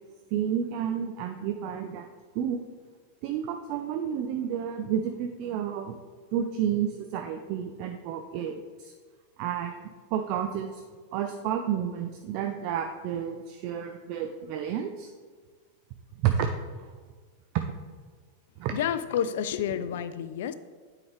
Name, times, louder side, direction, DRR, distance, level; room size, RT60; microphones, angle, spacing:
voice 1, 0.3-2.1 2.3-2.6 3.2-6.0 6.3-8.9 9.4-10.8 11.1-15.1 16.2-16.5 16.8-16.9 18.6-18.7, right 9 dB, 45° right, 0.4 m, -30 dB
voice 2, 18.7-20.5, left 9 dB, 55° left, 0.3 m, -29 dB
9.2 x 4.8 x 3.4 m
figure-of-eight pair, 90°, 0 cm